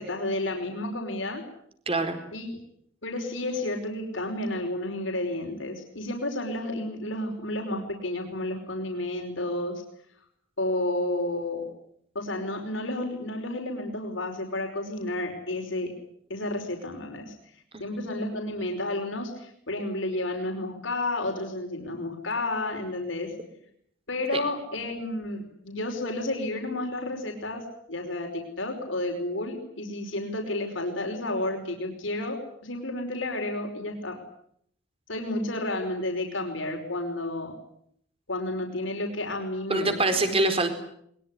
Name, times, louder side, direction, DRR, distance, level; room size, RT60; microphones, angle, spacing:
voice 1, 0.0-1.4 2.3-2.6 3.0-9.8 10.6-11.7 12.1-15.9 16.3-17.3 17.8-23.3 24.1-27.6 27.9-34.1 35.1-37.5 38.3-40.3, left 1 dB, 70° left, 2 dB, 5.2 m, -31 dB
voice 2, 1.9-2.2 17.7-17.8 24.3-24.4 39.7-40.7, right 2 dB, 30° right, 7 dB, 4.4 m, -24 dB
22.5 x 22.0 x 10.0 m, 0.70 s
head